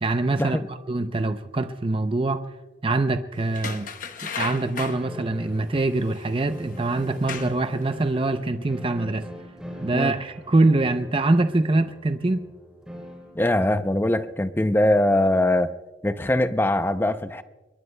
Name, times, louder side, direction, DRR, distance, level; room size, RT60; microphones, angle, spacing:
voice 1, 0.0-0.6 0.9-2.4 2.8-3.9 4.3-9.2 9.8-12.5, right 2 dB, 30° right, 9 dB, 0.5 m, -24 dB
sound 1, 3.5-5.0 6.2-6.3 7.0-7.7 8.1-8.2, left 5 dB, 45° left, 0.9 m, -34 dB
sound 2, 5.0-13.4, equal, 5° right, 3.8 m, -42 dB
voice 2, 13.3-15.7 16.0-17.4, left 1 dB, 10° left, 11 dB, 0.5 m, -22 dB
25.5 x 22.0 x 2.2 m, 1.2 s
head